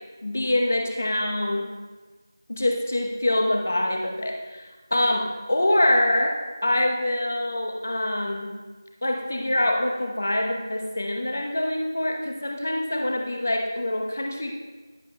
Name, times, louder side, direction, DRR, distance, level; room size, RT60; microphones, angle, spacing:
voice 1, 0.2-1.7 2.5-4.6 4.9-6.3 6.6-8.5 9.0-14.5, left 1 dB, 30° left, 1 dB, 0.9 m, -25 dB
21.5 x 7.4 x 2.2 m, 1.3 s
figure-of-eight pair, 180°, 2 cm